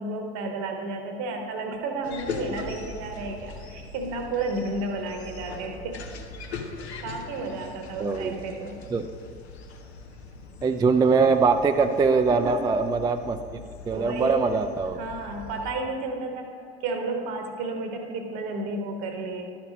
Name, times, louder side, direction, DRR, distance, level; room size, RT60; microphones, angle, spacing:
voice 1, 0.0-6.0 6.4-6.7 7.0-8.8 12.3-12.7 13.9-14.6 15.0-19.6, right 3 dB, 60° right, 4 dB, 1.1 m, -32 dB
sound 1, 2.0-15.7, left 4 dB, 80° left, 0.6 m, -41 dB
voice 2, 8.0-8.3 8.9-9.1 10.6-13.6 13.9-15.0, right 4 dB, 15° right, 7 dB, 0.3 m, -22 dB
12.0 x 4.3 x 5.2 m, 2.4 s
figure-of-eight pair, 50°, 32 cm